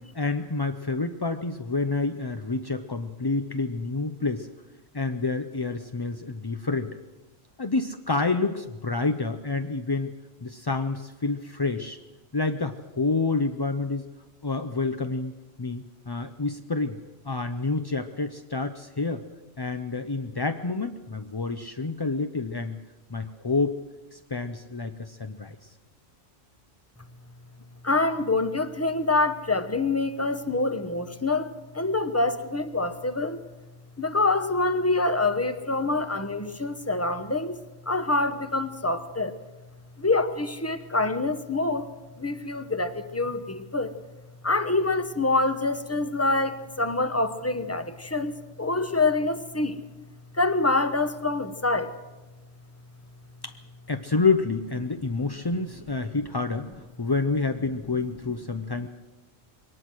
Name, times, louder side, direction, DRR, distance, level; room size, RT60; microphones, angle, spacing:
voice 1, 0.1-4.5 4.9-7.0 7.6-10.1 10.4-12.0 12.3-14.1 14.4-17.0 17.2-19.2 19.6-22.8 23.1-23.8 24.1-25.7 53.4-53.6 53.9-58.9, left 3 dB, 30° left, 7 dB, 0.4 m, -28 dB
voice 2, 27.8-33.4 34.0-37.6 37.9-39.3 40.0-41.9 42.2-43.9 44.4-49.8 50.3-51.9, left 2 dB, 15° left, 10 dB, 0.8 m, -26 dB
22.0 x 18.5 x 6.3 m, 1.2 s
omnidirectional pair, 1.3 m